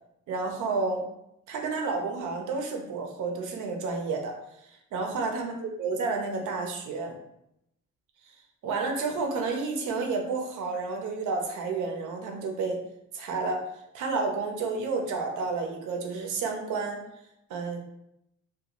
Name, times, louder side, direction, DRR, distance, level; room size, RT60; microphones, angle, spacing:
voice 1, 0.3-1.1 1.5-4.3 4.9-7.1 8.3-8.4 8.6-12.8 13.1-13.6 13.9-17.0 17.5-17.8, right 4 dB, 80° right, 2 dB, 0.6 m, -30 dB
2.5 x 2.3 x 2.9 m, 0.81 s
cardioid pair, 90°, 30 cm